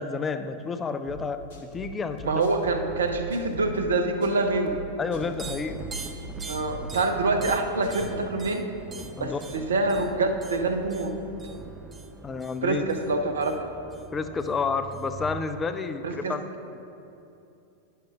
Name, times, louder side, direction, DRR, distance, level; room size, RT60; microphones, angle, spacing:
voice 1, 0.0-2.3 5.0-5.8 9.2-9.6 12.2-12.8 14.1-16.4, left 4 dB, 20° left, 9 dB, 0.4 m, -30 dB
sound 1, 1.1-8.3, right 2 dB, 60° left, 1.2 m, -41 dB
voice 2, 2.2-4.7 6.5-8.6 9.2-11.1 12.6-13.7 16.0-16.3, right 3 dB, 70° right, 5 dB, 0.8 m, -26 dB
sound 2, 5.1-15.4, right 4 dB, 15° right, 0.8 m, -42 dB
11.0 x 10.0 x 2.5 m, 2.8 s
figure-of-eight pair, 90°, 0 cm